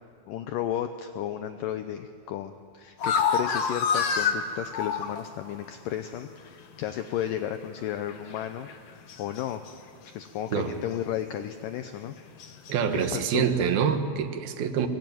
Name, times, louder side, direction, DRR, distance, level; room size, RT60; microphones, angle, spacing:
voice 1, 0.3-9.6 10.0-12.2 12.9-13.5, left 10 dB, 80° left, 8 dB, 2.0 m, -33 dB
sound 1, 3.0-5.3 6.2-6.3 8.1-8.4 8.7-8.8 9.1-9.7 12.4-13.1, left 6 dB, 60° left, 1.6 m, -27 dB
voice 2, 12.7-14.9, right 7 dB, 70° right, 7 dB, 3.1 m, -26 dB
23.5 x 23.0 x 9.4 m, 2.2 s
omnidirectional pair, 4.8 m